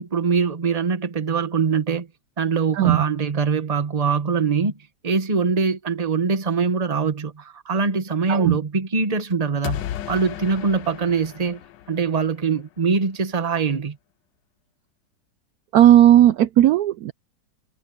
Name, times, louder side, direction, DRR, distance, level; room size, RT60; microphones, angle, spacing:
voice 1, 0.0-2.1 2.4-4.7 5.0-9.8 10.1-11.6 11.9-14.0, right 5 dB, 25° right, 1.2 m, -23 dB
sound 1, 9.6-12.5, left 12 dB, 85° left, 1.4 m, -34 dB
voice 2, 15.7-17.1, right 12 dB, 70° right, 0.9 m, -15 dB
omnidirectional pair, 1.9 m